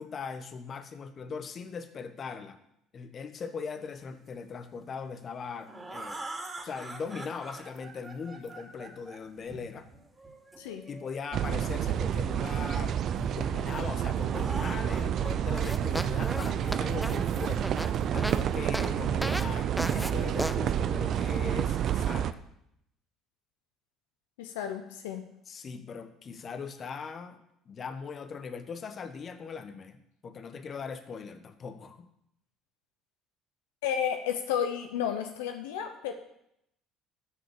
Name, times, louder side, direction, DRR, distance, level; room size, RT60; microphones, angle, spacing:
voice 1, 0.0-2.6 2.9-6.2 6.6-9.9 10.9-17.8 18.1-22.4 25.5-32.1, left 5 dB, 45° left, 10 dB, 1.2 m, -40 dB
sound 1, 5.2-11.1 12.1-13.2 13.7-13.8 14.0-15.6 16.0-18.8, right 2 dB, 20° right, 2.7 m, -45 dB
sound 2, 11.3-22.3, right 9 dB, 55° right, 0.6 m, -29 dB
sound 3, 15.6-18.4 18.7-18.9 19.2-19.5 19.8-20.1 20.4-20.6, equal, ahead, 0.7 m, -34 dB
voice 2, 24.4-25.2 33.8-36.1, left 9 dB, 80° left, 6 dB, 0.8 m, -32 dB
12.5 x 6.5 x 6.7 m, 0.77 s
hypercardioid pair, 60°, 0 cm